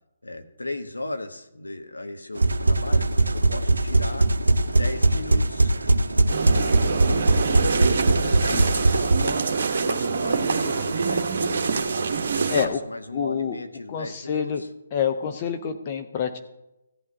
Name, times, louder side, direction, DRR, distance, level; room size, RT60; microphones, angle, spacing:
voice 1, 0.2-4.3 4.7-9.5 9.9-12.0 12.6-14.7, left 2 dB, 85° left, 6 dB, 1.1 m, -36 dB
sound 1, 2.4-9.2, right 2 dB, 75° right, 0.6 m, -21 dB
sound 2, 6.3-12.7, right 4 dB, 55° right, 1.0 m, -25 dB
voice 2, 12.5-12.8 13.1-13.6 13.9-14.6 14.9-16.4, left 7 dB, 35° left, 6 dB, 0.7 m, -27 dB
16.0 x 8.6 x 2.8 m, 0.95 s
figure-of-eight pair, 140°, 0 cm